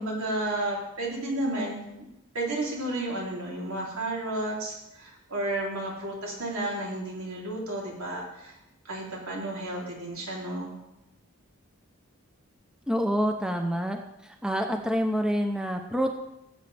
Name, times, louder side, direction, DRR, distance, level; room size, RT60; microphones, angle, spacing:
voice 1, 0.0-2.1 2.3-8.5 8.8-10.7, right 1 dB, 90° right, -3 dB, 3.2 m, -32 dB
voice 2, 12.9-16.2, equal, 5° right, 4 dB, 0.6 m, -27 dB
15.5 x 8.1 x 3.4 m, 0.88 s
head